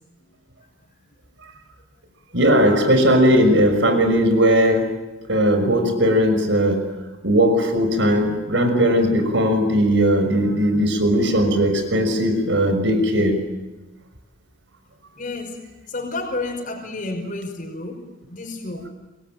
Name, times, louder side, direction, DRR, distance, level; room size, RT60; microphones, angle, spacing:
voice 1, 2.3-4.9 5.3-6.8 7.2-13.4, equal, 65° right, 7 dB, 6.1 m, -18 dB
voice 2, 15.2-15.6 15.9-18.0 18.3-18.8, left 2 dB, 40° left, 2 dB, 5.3 m, -30 dB
27.5 x 23.0 x 9.1 m, 1.1 s
head